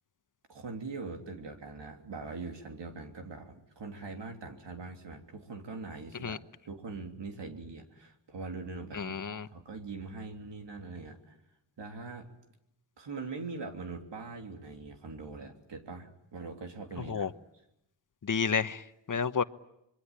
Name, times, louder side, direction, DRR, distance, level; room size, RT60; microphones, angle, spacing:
voice 1, 0.5-11.4 11.8-12.3 13.0-17.4, right 3 dB, 75° right, 3.3 m, -42 dB
voice 2, 8.9-9.5 17.1-17.3 18.2-18.8 19.1-19.4, left 6 dB, 45° left, 1.2 m, -30 dB
26.5 x 22.5 x 8.9 m
cardioid pair, 60°, 43 cm